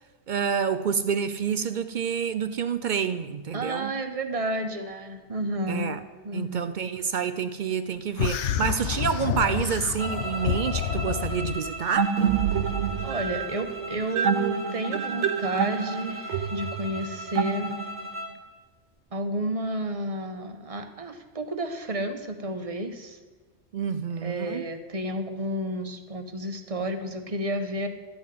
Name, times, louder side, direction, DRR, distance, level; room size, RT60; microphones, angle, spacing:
voice 1, 0.3-3.9 5.7-6.0 6.3-12.2 23.7-24.6, right 7 dB, 60° right, 0.5 m, -28 dB
voice 2, 3.5-6.0 6.2-6.6 13.0-17.7 19.1-23.2 24.2-27.9, right 1 dB, 30° right, 1.0 m, -31 dB
sound 1, 8.2-11.6, left 9 dB, 80° left, 1.0 m, -29 dB
sound 2, 10.0-18.4, equal, 10° right, 1.3 m, -38 dB
sound 3, 12.0-18.1, right 7 dB, 80° right, 1.0 m, -27 dB
13.0 x 5.6 x 9.2 m
omnidirectional pair, 1.2 m